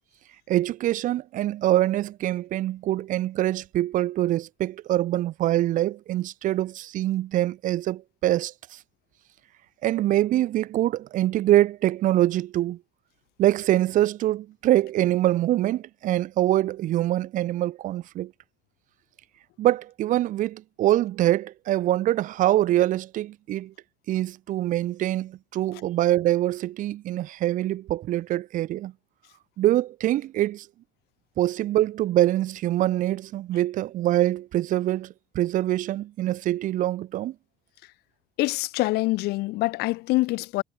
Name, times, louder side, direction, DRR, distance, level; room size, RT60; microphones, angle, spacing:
voice 1, 0.5-8.8 9.8-12.8 13.4-18.3 19.6-23.7 24.1-28.9 29.6-30.7 31.4-37.3, right 14 dB, 55° right, 2.0 m, -24 dB
voice 2, 38.4-40.6, left 21 dB, 80° left, 3.5 m, -25 dB
cardioid pair, 165°, 16 cm